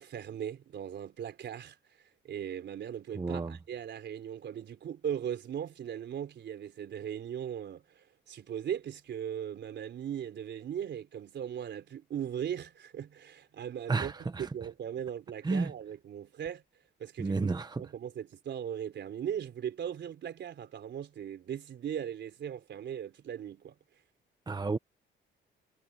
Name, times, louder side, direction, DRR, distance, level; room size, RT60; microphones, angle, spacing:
voice 1, 0.0-14.3 14.5-16.6 17.0-17.5 17.8-23.8, right 9 dB, 65° right, 3.9 m, -38 dB
voice 2, 3.1-3.6 13.9-14.5 15.4-15.7 17.2-17.8 24.5-24.8, right 3 dB, 20° right, 1.0 m, -31 dB
cardioid pair, 90°, 20 cm